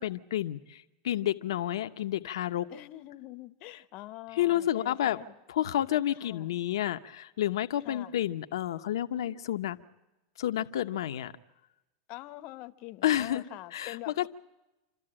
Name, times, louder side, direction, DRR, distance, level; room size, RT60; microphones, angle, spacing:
voice 1, 0.0-2.7 4.3-5.2 5.5-9.8 10.4-11.3 13.0-13.4 13.7-14.3, left 12 dB, 80° left, 0.8 m, -30 dB
voice 2, 2.7-5.3 6.2-6.5 7.8-8.2 12.1-14.3, left 17 dB, 50° left, 0.9 m, -44 dB
27.5 x 13.5 x 8.8 m
hypercardioid pair, 115°, 2 cm